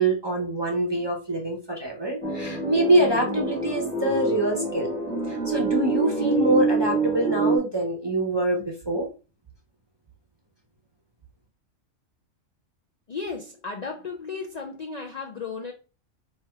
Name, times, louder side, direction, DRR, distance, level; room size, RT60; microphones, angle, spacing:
voice 1, 0.0-4.9 5.2-9.1, right 1 dB, 30° right, 0.5 m, -25 dB
sound 1, 2.2-7.6, right 3 dB, 10° left, 0.7 m, -26 dB
voice 2, 13.1-15.7, left 4 dB, 85° left, 0.3 m, -34 dB
3.3 x 2.8 x 4.5 m
omnidirectional pair, 1.4 m